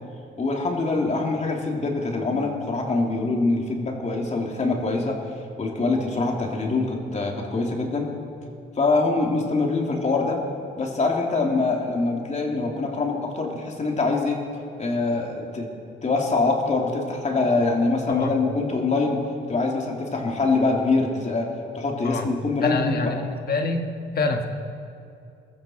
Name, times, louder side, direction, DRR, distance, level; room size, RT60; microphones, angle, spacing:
voice 1, 0.4-5.2 5.6-8.1 8.8-10.4 10.8-14.4 14.8-15.7 16.0-19.2 19.5-21.5 21.7-23.2, left 3 dB, 35° left, 0 dB, 3.0 m, -24 dB
voice 2, 22.6-23.9 24.1-24.5, left 3 dB, 50° left, 5 dB, 1.5 m, -26 dB
22.0 x 13.5 x 4.5 m, 2.5 s
cardioid pair, 90°, 20 cm